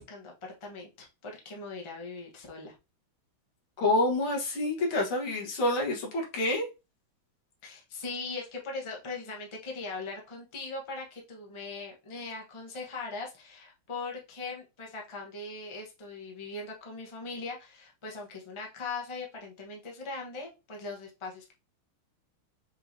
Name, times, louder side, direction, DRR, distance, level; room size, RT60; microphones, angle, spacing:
voice 1, 0.0-2.7 7.6-21.5, left 3 dB, 25° left, 0 dB, 0.7 m, -40 dB
voice 2, 3.8-6.7, left 2 dB, 90° left, -1 dB, 2.3 m, -27 dB
5.4 x 3.2 x 2.7 m, 0.27 s
omnidirectional pair, 2.2 m